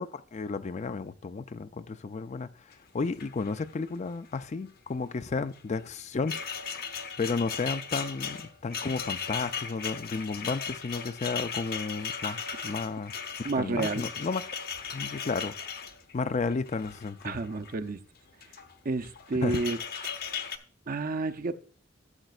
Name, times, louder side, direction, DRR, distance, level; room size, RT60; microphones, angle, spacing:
voice 1, 0.0-2.5 2.9-6.3 7.2-13.1 13.4-14.4 14.9-15.6 16.1-17.4 19.4-19.6, left 4 dB, 40° left, 0.4 m, -32 dB
sound 1, 2.7-2.8 3.0-4.4 5.5-17.8 18.3-18.7 19.0-20.6, left 6 dB, 55° left, 0.9 m, -37 dB
voice 2, 13.4-14.0 17.2-18.0 18.8-19.8 20.9-21.5, right 3 dB, 50° right, 0.6 m, -30 dB
13.0 x 7.7 x 2.4 m
head